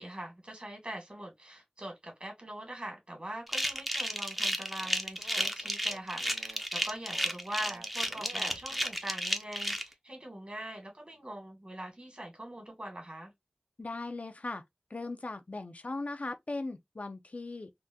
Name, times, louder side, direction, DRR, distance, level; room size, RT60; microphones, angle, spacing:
voice 1, 0.0-13.3, right 1 dB, 50° right, 1.9 m, -43 dB
sound 1, 3.5-9.8, equal, 5° right, 0.5 m, -32 dB
sound 2, 4.8-8.9, right 2 dB, 75° right, 0.4 m, -51 dB
voice 2, 13.8-14.6 14.9-17.7, left 2 dB, 70° left, 0.5 m, -38 dB
3.5 x 2.1 x 2.6 m
wide cardioid pair, 45°, 3 cm